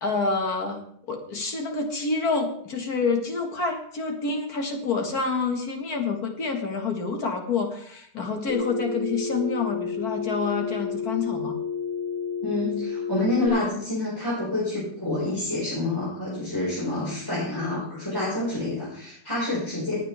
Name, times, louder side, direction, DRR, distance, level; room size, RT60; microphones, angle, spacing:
voice 1, 0.0-11.6, left 4 dB, 65° left, 3 dB, 2.3 m, -28 dB
Telephone, 8.5-13.5, left 5 dB, 55° right, 3.4 m, -30 dB
voice 2, 12.4-20.0, left 2 dB, 15° left, -9 dB, 5.1 m, -28 dB
19.5 x 8.8 x 3.5 m, 0.65 s
omnidirectional pair, 1.7 m